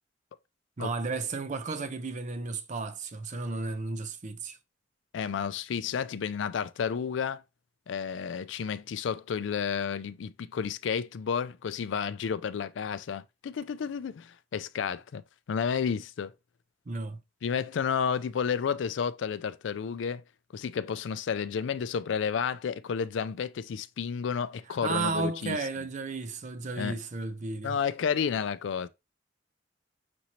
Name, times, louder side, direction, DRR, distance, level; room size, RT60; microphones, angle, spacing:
voice 1, 0.8-4.6 16.9-17.2 24.8-27.8, right 3 dB, 40° right, 0.5 m, -33 dB
voice 2, 5.1-7.4 7.9-15.2 15.5-16.3 17.4-20.2 20.5-25.6 26.8-27.0 27.6-28.9, left 7 dB, 70° left, 0.4 m, -31 dB
6.0 x 2.7 x 2.9 m
head